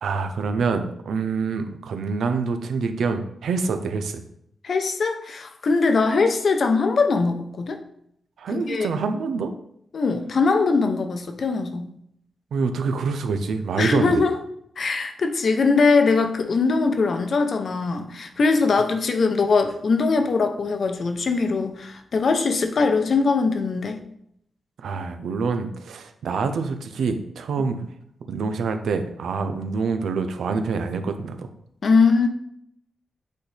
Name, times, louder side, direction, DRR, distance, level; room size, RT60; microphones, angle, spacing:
voice 1, 0.0-4.2 8.4-9.5 12.5-14.2 24.8-27.9 28.3-31.5, right 4 dB, 85° right, 8 dB, 0.6 m, -26 dB
voice 2, 4.6-7.8 8.5-8.9 9.9-11.9 13.8-14.4 14.8-24.0 31.8-32.3, left 4 dB, 55° left, 6 dB, 0.8 m, -21 dB
8.4 x 4.1 x 3.4 m, 0.73 s
wide cardioid pair, 105°, 0 cm